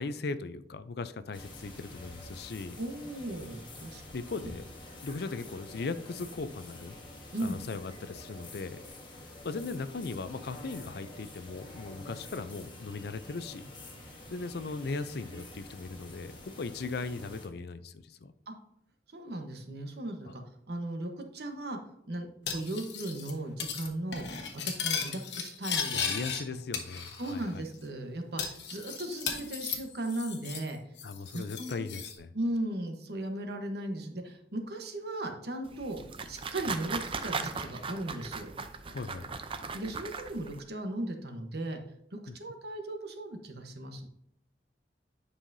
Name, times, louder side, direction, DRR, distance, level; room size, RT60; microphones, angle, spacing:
voice 1, 0.0-2.8 4.1-4.6 5.0-7.0 7.4-8.8 9.4-13.7 14.3-18.3 25.9-27.6 31.0-32.3 38.9-39.4 42.3-42.4, left 3 dB, 60° left, 12 dB, 0.5 m, -38 dB
sound 1, 1.3-17.5, left 2 dB, 25° left, 1.4 m, -48 dB
voice 2, 2.8-4.0 4.4-4.5 7.3-7.6 15.3-15.4 18.5-18.6 19.1-20.4 20.7-21.8 22.1-24.2 24.5-26.6 27.2-30.8 31.3-31.8 32.3-36.0 36.3-38.5 39.7-41.8 42.1-44.0, right 1 dB, 60° right, 4 dB, 1.1 m, -37 dB
Cutlery silverware, 22.5-23.3 23.6-23.9 24.1-26.4 26.7-27.4 27.7-27.8 28.4-30.7 31.0-32.1, left 6 dB, 75° left, 1.2 m, -36 dB
sound 2, 35.7-40.6, right 4 dB, 30° right, 0.5 m, -38 dB
10.0 x 5.6 x 2.7 m, 0.77 s
head